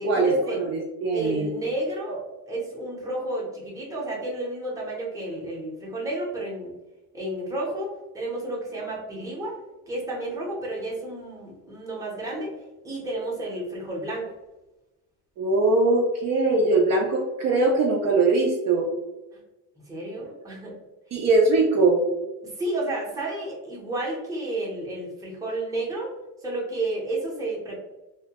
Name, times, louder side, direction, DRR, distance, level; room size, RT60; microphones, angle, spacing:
voice 1, 0.0-0.6 1.1-6.7 7.1-9.6 9.9-12.5 12.8-14.3 19.3-19.4 19.9-20.8 22.4-26.1 26.4-27.8, right 1 dB, 10° right, -4 dB, 0.7 m, -31 dB
voice 2, 0.6-1.5 15.4-18.9 21.1-22.0, right 3 dB, 45° right, -1 dB, 0.5 m, -21 dB
2.7 x 2.1 x 2.8 m, 1.0 s
cardioid pair, 135°, 38 cm